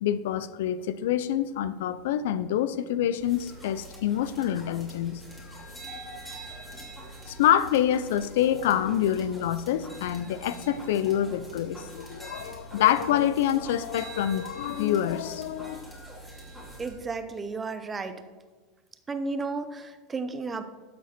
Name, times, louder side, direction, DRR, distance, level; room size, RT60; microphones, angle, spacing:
voice 1, 0.0-5.2 7.3-15.9, left 10 dB, 85° left, 14 dB, 0.5 m, -26 dB
sound 1, 3.2-16.9, right 1 dB, 10° left, 2.7 m, -44 dB
voice 2, 16.8-18.2 19.1-20.6, right 3 dB, 15° right, 9 dB, 0.7 m, -33 dB
11.5 x 7.5 x 4.4 m, 1.4 s
supercardioid pair, 135°, 0 cm